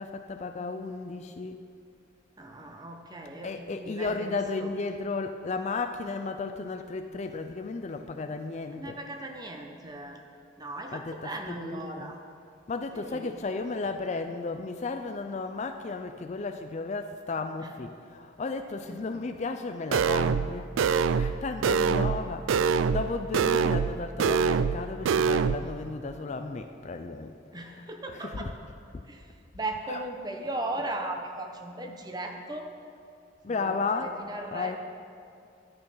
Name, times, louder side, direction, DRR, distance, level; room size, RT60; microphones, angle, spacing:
voice 1, 0.0-1.6 3.4-8.9 10.9-12.1 12.7-20.7 21.1-27.3 27.7-27.8 28.1-28.5 29.9-30.0 33.4-34.1 34.5-34.8, left 3 dB, 35° left, 7 dB, 0.4 m, -34 dB
voice 2, 2.4-4.7 8.7-10.2 10.6-12.2 12.9-13.4 17.6-17.7 18.9-19.2 27.5-28.5 29.1-32.7 33.5-34.8, right 2 dB, 20° right, 3 dB, 0.8 m, -38 dB
sound 1, 19.9-20.5 20.8-21.3 21.6-22.2 22.5-23.1 23.3-23.9 24.2-24.8 25.0-25.6, right 6 dB, 70° right, 0.3 m, -24 dB
11.0 x 8.9 x 5.6 m, 2.5 s
head